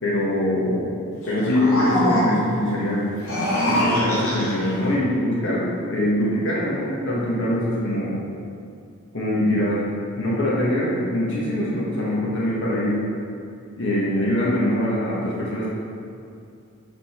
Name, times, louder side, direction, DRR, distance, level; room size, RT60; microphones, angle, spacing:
voice 1, 0.0-1.0 1.3-3.0 3.7-8.1 9.1-9.8 10.2-13.0 13.8-15.7, left 1 dB, 60° left, -6 dB, 1.6 m, -23 dB
sound 1, 1.2-2.6 3.1-4.7, equal, 85° left, 1.8 m, -23 dB
7.0 x 5.2 x 4.4 m, 2.4 s
head